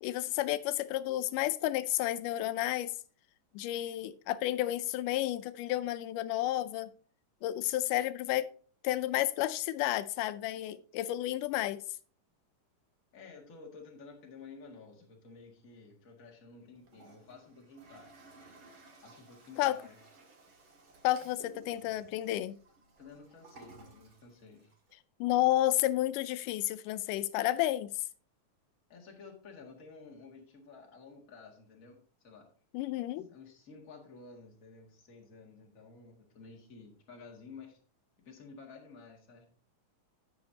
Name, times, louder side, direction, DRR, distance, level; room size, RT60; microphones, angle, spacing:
voice 1, 0.0-2.9 3.6-6.9 7.4-8.5 8.8-11.8 19.6-19.8 21.0-22.6 25.2-28.0 32.7-33.3, left 14 dB, 85° left, 2.1 m, -31 dB
voice 2, 13.1-18.1 19.0-20.0 23.0-24.7 28.9-32.5 33.3-37.8 38.2-39.5, left 4 dB, 30° left, 1.9 m, -52 dB
Toilet flush, 16.7-24.9, right 3 dB, 45° right, 2.3 m, -57 dB
16.5 x 5.7 x 2.8 m
omnidirectional pair, 3.6 m